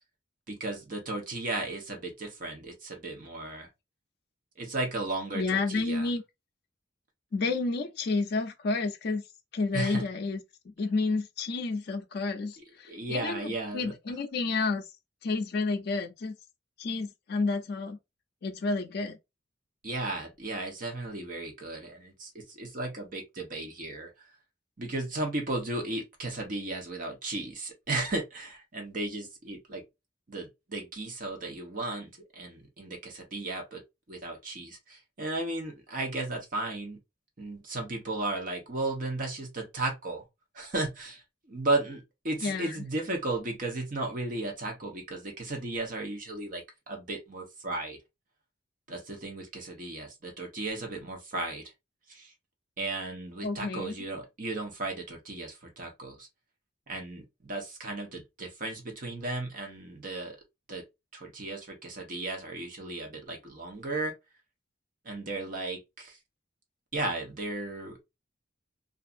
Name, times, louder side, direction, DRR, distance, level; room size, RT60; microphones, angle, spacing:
voice 1, 0.5-3.7 4.6-6.1 9.7-10.0 12.6-13.9 19.8-24.3 24.8-29.8 30.3-33.8 34.1-37.0 37.4-40.2 40.5-48.0 48.9-51.7 52.1-52.3 52.8-56.3 56.9-60.4 60.7-60.8 61.1-64.1 65.0-66.2 66.9-68.0, right 2 dB, 45° right, 0.9 m, -35 dB
voice 2, 5.3-6.2 7.3-9.2 9.5-14.9 15.2-16.4 16.8-18.0 18.4-19.2 42.4-42.8 53.4-53.9, left 3 dB, 60° left, 0.4 m, -30 dB
2.6 x 2.4 x 2.4 m
head